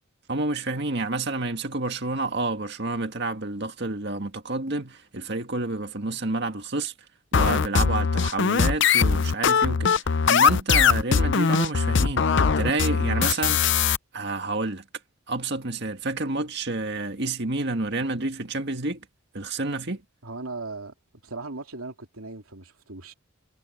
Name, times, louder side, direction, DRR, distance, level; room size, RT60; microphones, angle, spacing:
voice 1, 0.3-6.9 7.3-13.7 14.1-14.8 15.3-19.1 19.3-20.0, right 2 dB, 50° right, 1.9 m, -29 dB
sound 1, 7.3-14.0, left 6 dB, 55° left, 0.6 m, -21 dB
voice 2, 20.2-20.9 21.2-23.1, right 3 dB, 80° right, 2.9 m, -37 dB
head